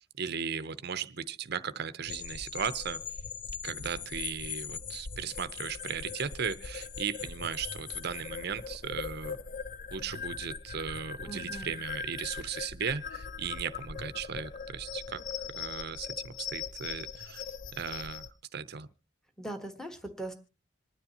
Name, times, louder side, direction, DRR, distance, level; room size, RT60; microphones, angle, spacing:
voice 1, 0.2-3.0 3.6-9.4 9.9-15.2 15.6-17.4 17.7-18.9, right 6 dB, 55° right, 0.7 m, -36 dB
sound 1, 2.1-18.3, left 6 dB, 45° left, 0.6 m, -40 dB
voice 2, 11.3-11.8 19.4-20.3, right 2 dB, 5° left, 1.4 m, -40 dB
26.5 x 9.8 x 2.9 m
head